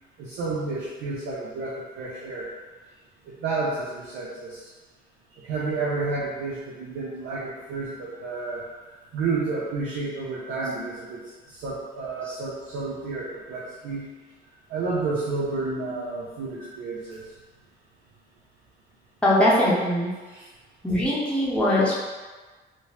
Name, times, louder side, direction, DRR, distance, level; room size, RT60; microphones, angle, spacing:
voice 1, 0.2-2.5 3.3-4.6 5.4-8.6 9.1-14.1 14.7-17.2 20.3-20.5, right 3 dB, 85° right, -7 dB, 0.5 m, -31 dB
voice 2, 19.2-20.1 20.8-21.9, left 1 dB, 5° left, -7 dB, 0.7 m, -21 dB
2.7 x 2.0 x 3.1 m, 1.3 s
cardioid pair, 90°, 20 cm